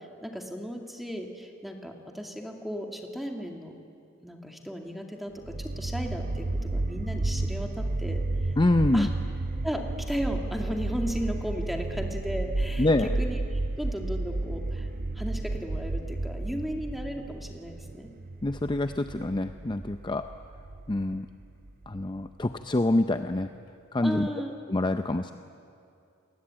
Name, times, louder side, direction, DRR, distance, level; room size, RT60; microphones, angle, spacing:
voice 1, 0.0-3.7 4.2-8.5 8.9-9.1 9.6-13.4 13.8-14.9 15.2-18.1 24.0-24.5, equal, ahead, 2 dB, 2.2 m, -35 dB
sound 1, 5.4-22.5, right 2 dB, 45° right, 0.7 m, -32 dB
voice 2, 8.6-9.1 12.8-13.1 18.4-20.3 20.9-21.3 21.9-23.5 23.9-24.3 24.7-25.3, left 2 dB, 20° left, 8 dB, 0.6 m, -26 dB
29.0 x 20.5 x 8.9 m, 2.5 s
head